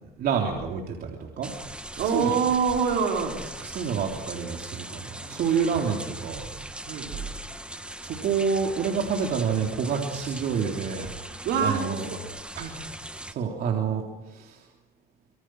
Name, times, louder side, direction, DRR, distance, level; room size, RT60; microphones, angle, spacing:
voice 1, 0.0-1.5 2.1-2.3 3.6-6.4 8.0-12.1 12.6-12.7 13.3-14.6, right 6 dB, 65° right, 1 dB, 3.4 m, -28 dB
sound 1, 1.4-13.3, right 1 dB, 5° right, 1.6 m, -40 dB
voice 2, 2.0-3.7 5.2-5.4 6.9-7.3 11.4-12.2 12.5-12.8, right 6 dB, 80° right, 1 dB, 5.2 m, -26 dB
25.5 x 24.0 x 6.3 m, 0.98 s
cardioid pair, 110°, 17 cm